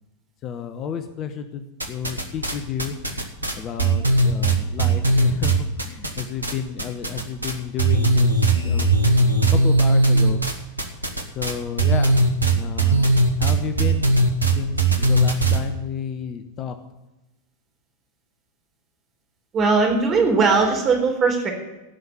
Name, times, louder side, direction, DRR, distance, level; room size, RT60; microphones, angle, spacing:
voice 1, 0.4-3.2 3.5-10.4 11.3-12.2 12.5-13.0 13.4-14.1 14.6-16.7, left 7 dB, 30° left, 9 dB, 1.0 m, -31 dB
sound 1, 1.8-2.5 2.8-6.5 6.8-7.5 7.8-15.6, right 2 dB, 80° right, 1.5 m, -18 dB
voice 2, 19.5-21.5, right 4 dB, 30° right, 1 dB, 3.8 m, -19 dB
16.5 x 5.8 x 9.0 m, 1.0 s
figure-of-eight pair, 90°, 0 cm